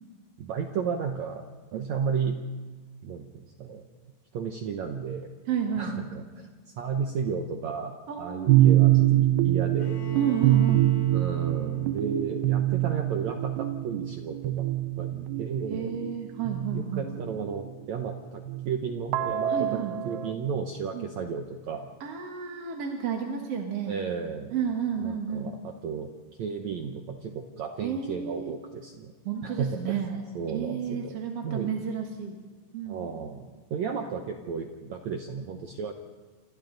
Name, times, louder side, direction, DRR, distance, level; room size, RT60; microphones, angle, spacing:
voice 1, 0.4-1.4 1.7-2.4 3.0-3.8 4.3-5.3 5.8-10.0 11.1-14.7 15.0-15.9 16.7-21.9 23.9-24.5 25.0-26.1 26.4-29.1 29.4-30.0 30.4-31.8 32.9-35.9, right 6 dB, 70° right, 4 dB, 1.8 m, -33 dB
voice 2, 5.5-6.1 8.1-8.7 10.1-10.9 15.7-17.1 19.5-20.0 20.9-21.1 22.0-24.0 24.5-25.5 27.8-28.5 29.3-30.2 30.5-32.4 32.7-33.0, right 7 dB, 50° right, 1 dB, 2.1 m, -31 dB
sound 1, 8.5-17.6 18.5-20.3, right 14 dB, 90° right, 2.8 m, -25 dB
Bowed string instrument, 9.8-13.6, equal, 50° left, 4.2 m, -42 dB
29.0 x 26.5 x 3.9 m, 1.3 s
omnidirectional pair, 4.4 m